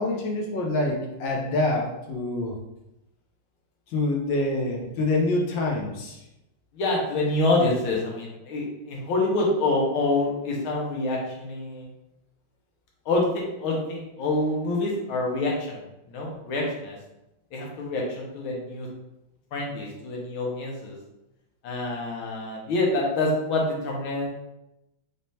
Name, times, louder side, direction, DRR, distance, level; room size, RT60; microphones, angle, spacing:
voice 1, 0.0-2.6 3.9-6.2, left 2 dB, 70° left, 0 dB, 1.3 m, -26 dB
voice 2, 6.7-11.9 13.1-15.8 16.1-17.0 17.5-18.9 19.5-21.0 21.6-24.3, left 2 dB, 90° left, -2 dB, 1.8 m, -26 dB
4.2 x 3.5 x 2.7 m, 0.90 s
omnidirectional pair, 2.2 m